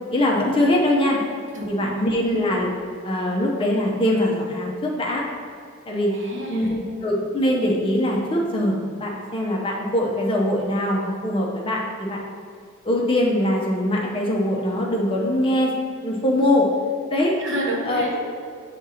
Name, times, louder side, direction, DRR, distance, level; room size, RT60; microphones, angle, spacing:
voice 1, 0.1-1.2 1.7-2.7 3.0-5.2 5.9-6.1 6.5-12.2 12.8-15.7 16.0-16.7 17.1-17.4 17.9-18.1, left 1 dB, 25° left, -2 dB, 0.7 m, -22 dB
voice 2, 1.5-2.1 6.1-6.9 17.4-18.2, right 1 dB, 60° right, -2 dB, 1.1 m, -30 dB
5.4 x 3.7 x 5.7 m, 2.3 s
head